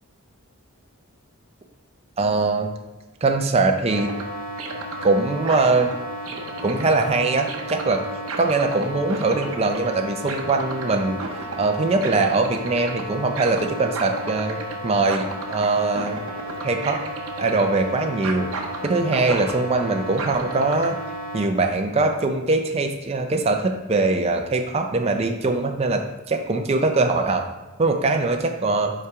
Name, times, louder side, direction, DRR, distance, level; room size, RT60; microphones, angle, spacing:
voice 1, 2.2-2.7 3.2-4.1 5.0-5.9 6.6-8.0 8.4-14.6 14.8-16.2 16.6-17.0 17.4-18.5 18.8-21.0 21.3-27.4 27.8-28.9, right 3 dB, 25° right, 4 dB, 0.4 m, -22 dB
sound 1, 3.9-21.4, right 1 dB, 70° right, 0.9 m, -32 dB
5.4 x 4.9 x 4.7 m, 1.1 s
head